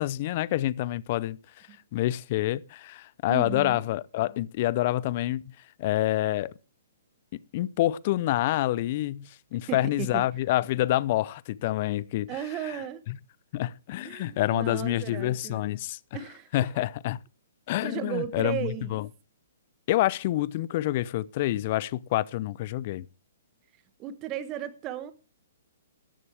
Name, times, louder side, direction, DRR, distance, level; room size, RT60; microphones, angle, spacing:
voice 1, 0.0-5.4 5.8-6.5 7.5-12.8 13.1-13.2 13.5-16.0 16.5-17.2 17.7-19.1 19.9-23.1, left 15 dB, 45° left, 0.5 m, -27 dB
voice 2, 3.3-3.8 9.7-10.2 12.3-13.0 14.0-15.6 16.1-16.5 16.7-16.8 17.8-19.0 24.0-25.1, right 11 dB, 30° right, 1.2 m, -35 dB
14.0 x 11.0 x 3.4 m
figure-of-eight pair, 125°, 0 cm